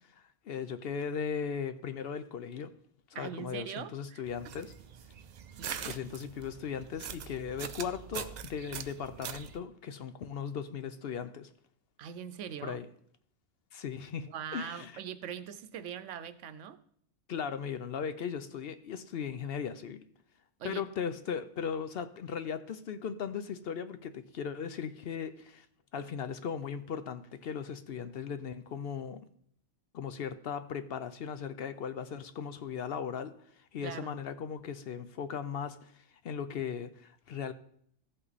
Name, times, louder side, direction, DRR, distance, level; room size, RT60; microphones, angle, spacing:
voice 1, 0.1-2.7 3.1-4.7 5.8-11.5 12.6-12.9 13.7-15.0 17.3-20.0 20.6-25.7 25.9-29.2 29.9-33.4 33.7-37.5, left 7 dB, 60° left, 0.7 m, -38 dB
voice 2, 3.1-4.2 5.6-5.8 12.0-12.8 14.2-16.8 20.6-20.8 33.8-34.1, right 9 dB, 85° right, 1.0 m, -41 dB
sound 1, 4.3-9.6, right 8 dB, 60° right, 0.4 m, -43 dB
14.5 x 5.5 x 4.1 m
omnidirectional pair, 1.2 m